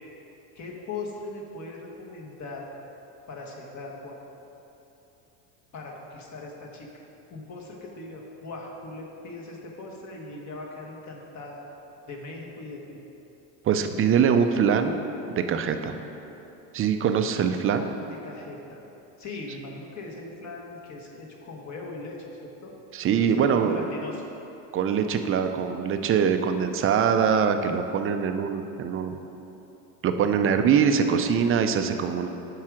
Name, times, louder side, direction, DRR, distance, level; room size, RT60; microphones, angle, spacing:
voice 1, 0.5-2.7 3.3-4.2 5.7-7.0 7.3-11.7 12.1-12.8 17.5-18.8 19.2-22.7 23.1-24.2 30.4-31.0, left 3 dB, 40° left, 0 dB, 1.4 m, -40 dB
voice 2, 13.6-14.9 15.3-16.0 16.7-17.9 22.9-23.9 24.7-29.2 30.0-32.3, right 7 dB, 30° right, 7 dB, 0.4 m, -23 dB
7.4 x 4.8 x 6.1 m, 3.0 s
supercardioid pair, 115°, 45 cm